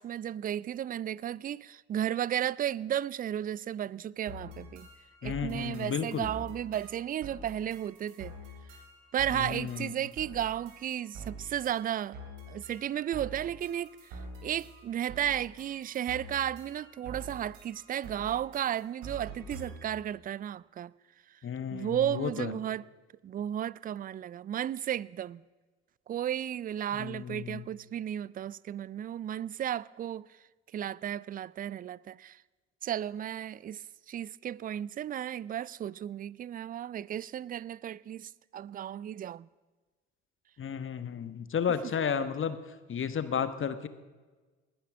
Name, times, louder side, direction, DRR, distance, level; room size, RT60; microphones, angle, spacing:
voice 1, 0.0-4.9 5.2-8.3 9.1-12.2 12.5-20.9 21.7-22.8 23.2-25.4 26.1-30.3 30.7-32.4 32.8-39.5, right 10 dB, 25° right, 0.4 m, -34 dB
sound 1, 4.3-20.0, right 2 dB, 65° right, 3.6 m, -46 dB
voice 2, 5.2-6.3 9.3-9.9 21.4-22.5 26.9-27.6 40.6-42.6 42.9-43.9, left 7 dB, 35° left, 1.3 m, -33 dB
20.0 x 10.5 x 6.3 m
figure-of-eight pair, 50°, 33 cm